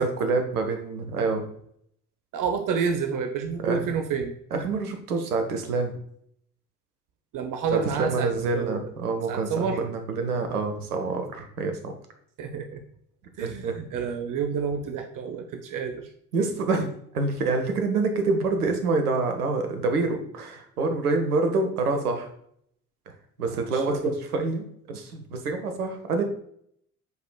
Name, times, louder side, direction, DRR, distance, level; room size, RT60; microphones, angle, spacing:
voice 1, 0.0-1.4 3.6-3.9 4.5-5.9 7.7-11.9 13.4-13.7 16.3-16.9 17.1-22.3 23.4-26.2, right 3 dB, 80° right, 5 dB, 1.1 m, -26 dB
voice 2, 2.3-4.3 7.3-8.9 9.3-9.8 12.4-12.8 13.4-16.1 23.5-24.0, right 6 dB, 45° right, 6 dB, 0.9 m, -29 dB
9.4 x 5.1 x 2.3 m, 0.68 s
figure-of-eight pair, 55°, 45 cm